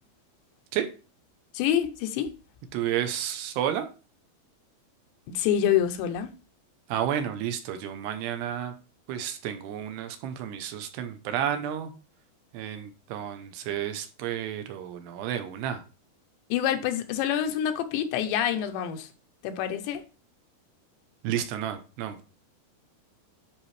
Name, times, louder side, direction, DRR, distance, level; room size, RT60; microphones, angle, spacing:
voice 1, 1.5-2.3 5.3-6.3 16.5-19.1 19.4-20.0, left 10 dB, 85° left, 3.2 m, -26 dB
voice 2, 2.7-3.9 6.9-8.7 9.1-11.9 12.5-15.8 21.2-22.2, right 10 dB, 80° right, 2.8 m, -31 dB
10.0 x 4.7 x 3.2 m
omnidirectional pair, 5.0 m